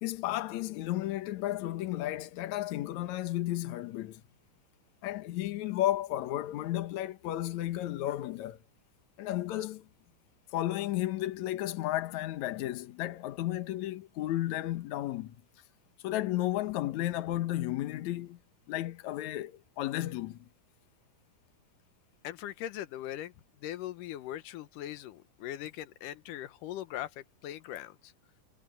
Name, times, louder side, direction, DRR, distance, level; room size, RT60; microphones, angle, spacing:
voice 1, 0.0-4.2 5.0-8.6 9.2-9.9 10.5-15.4 16.0-18.4 18.7-20.5, left 14 dB, 70° left, 2.4 m, -33 dB
voice 2, 22.2-23.3 23.6-28.1, left 12 dB, 85° left, 2.5 m, -40 dB
omnidirectional pair, 3.6 m